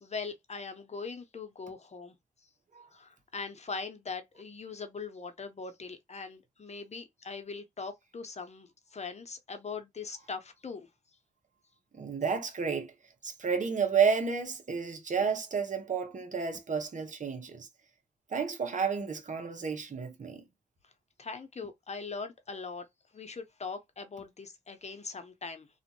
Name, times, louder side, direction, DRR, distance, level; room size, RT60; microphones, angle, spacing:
voice 1, 0.0-2.1 2.9-10.9 21.2-22.9 23.1-25.7, left 4 dB, 45° left, 0.9 m, -41 dB
voice 2, 11.9-12.9 13.2-17.7 18.3-20.4, right 6 dB, 50° right, 1.0 m, -31 dB
2.6 x 2.5 x 2.8 m
supercardioid pair, 45°, 16 cm